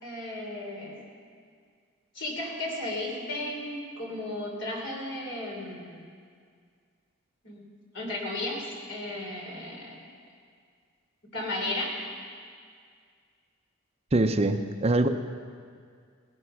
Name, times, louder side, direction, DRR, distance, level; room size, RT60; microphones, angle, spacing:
voice 1, 0.0-1.0 2.1-6.0 7.4-7.6 7.9-10.0 11.3-11.9, left 1 dB, 65° left, -1 dB, 3.6 m, -34 dB
voice 2, 14.1-15.1, right 2 dB, 30° right, 7 dB, 0.6 m, -23 dB
17.5 x 12.5 x 5.7 m, 2.1 s
head